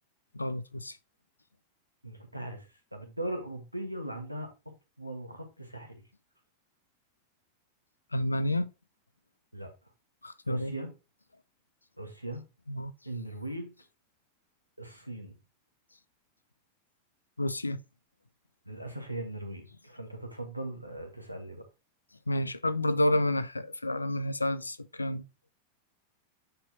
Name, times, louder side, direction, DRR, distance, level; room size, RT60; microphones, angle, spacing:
voice 1, 0.3-1.0 8.1-8.7 10.2-10.7 12.7-12.9 17.4-17.8 22.3-25.2, left 1 dB, 80° left, 0.4 m, -29 dB
voice 2, 2.0-4.5 5.0-6.0 9.5-9.7 10.5-10.9 12.0-12.4 13.0-13.7 14.8-15.4 18.6-21.6, right 1 dB, 90° right, 1.3 m, -39 dB
8.5 x 4.4 x 2.8 m
figure-of-eight pair, 90°, 0 cm